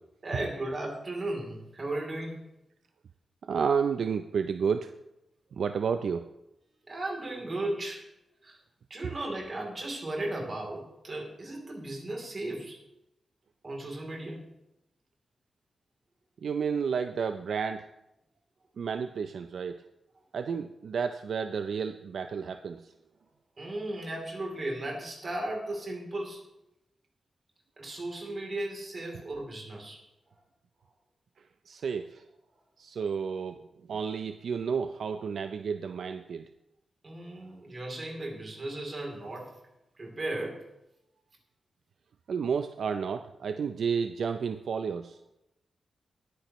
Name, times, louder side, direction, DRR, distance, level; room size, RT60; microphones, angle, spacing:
voice 1, 0.2-2.4 6.8-8.0 8.4-8.6 8.9-12.8 13.6-14.5 23.6-26.4 27.8-30.0 37.0-39.5 40.0-40.6, right 1 dB, 35° right, 0 dB, 3.2 m, -36 dB
voice 2, 3.5-4.9 5.6-6.2 16.4-17.9 18.8-19.8 20.3-22.8 31.7-32.2 32.8-33.6 33.9-36.4 42.3-45.2, right 6 dB, 70° right, 8 dB, 0.5 m, -31 dB
20.0 x 9.5 x 3.1 m, 0.88 s
wide cardioid pair, 145°, 0 cm